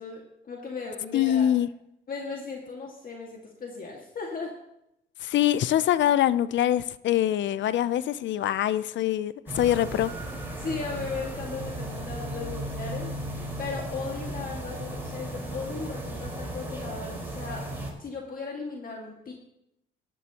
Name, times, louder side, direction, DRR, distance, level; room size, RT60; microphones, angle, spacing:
voice 1, 0.0-1.5 2.1-4.6 10.6-17.7 18.0-19.3, left 4 dB, 45° left, 1.9 m, -37 dB
voice 2, 1.1-1.7 5.2-10.1, left 12 dB, 70° left, 0.5 m, -24 dB
sound 1, 9.5-17.9, right 1 dB, 10° right, 4.6 m, -35 dB
16.5 x 12.0 x 2.9 m
cardioid pair, 90°, 20 cm